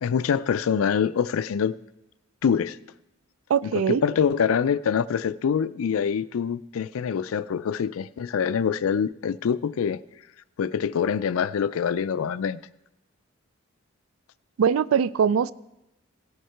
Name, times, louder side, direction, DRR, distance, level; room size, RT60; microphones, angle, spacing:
voice 1, 0.0-1.7 2.4-2.8 3.6-10.0 10.6-12.6, left 7 dB, 85° left, 0.4 m, -25 dB
voice 2, 3.5-4.0 14.6-15.5, right 7 dB, 85° right, 0.3 m, -21 dB
17.0 x 6.4 x 4.5 m
head